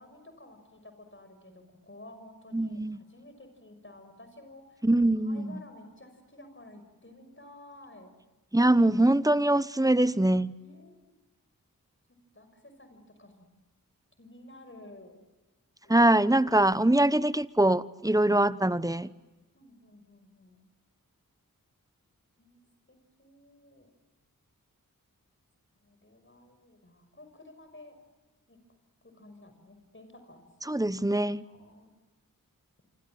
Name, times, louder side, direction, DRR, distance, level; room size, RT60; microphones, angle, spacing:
voice 1, 0.0-4.9 5.2-8.1 10.5-11.0 12.3-13.5 14.2-15.2 15.8-16.1 19.5-20.7 22.4-23.9 25.7-28.0 28.5-28.6 29.0-30.5 31.4-31.9, left 1 dB, 35° left, 5.9 m, -52 dB
voice 2, 2.5-3.0 4.8-5.6 8.5-10.5 15.9-19.1 30.7-31.4, right 1 dB, 10° right, 1.0 m, -23 dB
28.0 x 25.5 x 7.7 m
wide cardioid pair, 65°, 34 cm